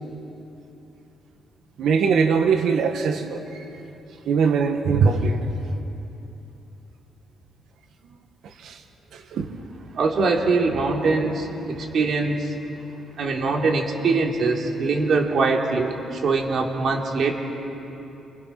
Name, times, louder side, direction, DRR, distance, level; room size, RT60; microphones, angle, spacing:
voice 1, 1.8-3.6 4.3-5.5 8.6-8.8 9.1-9.5, right 5 dB, 70° right, 4 dB, 1.8 m, -21 dB
voice 2, 9.9-12.6 13.2-17.3, right 3 dB, 55° right, 0 dB, 3.5 m, -22 dB
29.5 x 27.0 x 6.1 m, 3.0 s
cardioid pair, 135°, 0 cm